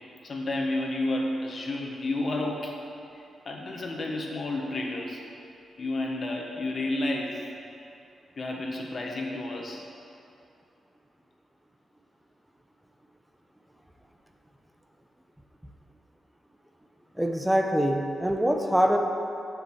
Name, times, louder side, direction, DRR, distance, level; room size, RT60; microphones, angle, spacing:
voice 1, 0.2-2.8 3.4-5.2 5.8-7.4 8.4-9.8, left 2 dB, 45° left, 0 dB, 1.4 m, -31 dB
voice 2, 17.2-19.0, equal, 5° right, 3 dB, 0.7 m, -24 dB
7.4 x 6.6 x 7.8 m, 2.7 s
wide cardioid pair, 125°, 0 cm